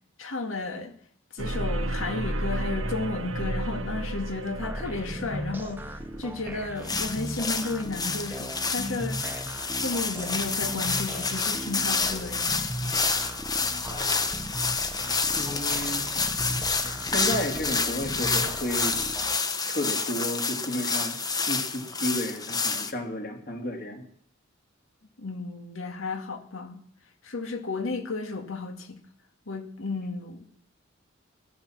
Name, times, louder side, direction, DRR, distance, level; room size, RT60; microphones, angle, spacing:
voice 1, 0.2-0.9 1.3-9.2 9.7-12.5 25.2-26.8 27.2-29.0 29.5-30.4, left 3 dB, 85° left, 2.1 m, -33 dB
sound 1, 1.4-6.7, right 1 dB, 85° right, 1.3 m, -32 dB
sound 2, 4.6-19.4, right 1 dB, 10° right, 1.0 m, -38 dB
sound 3, 6.8-22.9, left 4 dB, 20° left, 1.1 m, -29 dB
voice 2, 13.8-14.4 15.3-16.0 17.1-18.9 19.7-21.2 21.5-24.1, left 1 dB, 50° left, 3.0 m, -32 dB
16.5 x 12.0 x 7.4 m
head